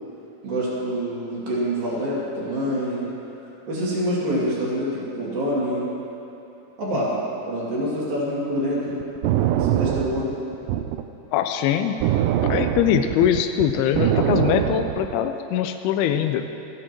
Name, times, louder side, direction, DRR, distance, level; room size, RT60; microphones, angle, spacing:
voice 1, 0.4-3.1 3.7-5.9 6.8-7.2 7.5-9.0 9.5-10.4, equal, 65° right, -7 dB, 4.4 m, -26 dB
sound 1, 9.0-11.1 12.0-15.3, right 11 dB, 85° right, 2.0 m, -23 dB
voice 2, 11.3-12.0 12.4-16.5, left 9 dB, 90° left, 7 dB, 2.5 m, -22 dB
26.0 x 10.0 x 3.1 m, 2.9 s
omnidirectional pair, 4.4 m